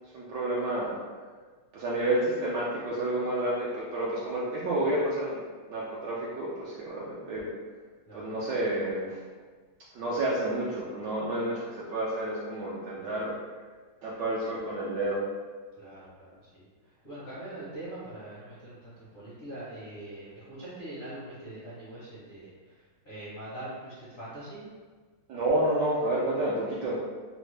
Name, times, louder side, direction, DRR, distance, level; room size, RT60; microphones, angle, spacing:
voice 1, 0.1-1.0 1.7-5.4 5.7-7.5 8.1-9.2 9.9-13.3 14.0-15.2 25.3-27.0, right 1 dB, 75° right, -6 dB, 1.0 m, -30 dB
voice 2, 15.8-16.7 17.0-24.6, right 1 dB, 65° left, -11 dB, 0.5 m, -43 dB
3.5 x 2.0 x 3.1 m, 1.5 s
omnidirectional pair, 2.3 m